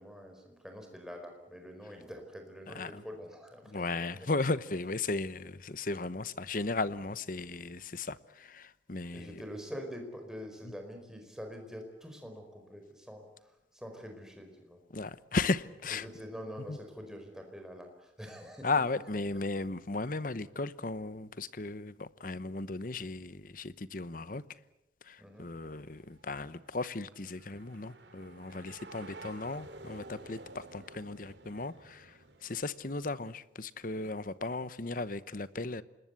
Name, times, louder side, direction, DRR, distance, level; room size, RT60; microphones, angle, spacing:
voice 1, 0.0-4.0 9.1-14.8 15.9-18.8 25.2-25.5, equal, 5° right, 4 dB, 4.8 m, -45 dB
voice 2, 2.7-3.0 3.7-9.4 14.9-16.1 16.7-16.8 18.6-24.4 25.0-35.8, left 3 dB, 50° left, 16 dB, 0.9 m, -36 dB
sound 1, 25.4-33.1, right 2 dB, 75° right, 2.7 m, -52 dB
27.0 x 20.5 x 8.3 m, 0.90 s
head